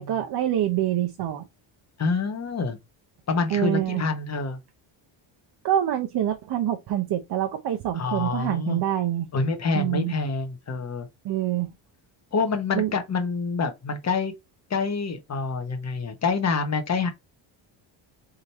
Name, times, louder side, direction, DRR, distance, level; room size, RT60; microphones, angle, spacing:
voice 1, 0.0-1.4 3.5-4.0 5.6-9.3 9.7-10.1 11.2-11.7 12.8-12.9, right 11 dB, 55° right, 0.7 m, -25 dB
voice 2, 2.0-2.8 3.3-4.6 7.9-8.8 9.3-11.1 12.3-14.3 14.7-17.1, left 4 dB, 35° left, 1.3 m, -27 dB
3.8 x 3.1 x 4.1 m
cardioid pair, 125°, 47 cm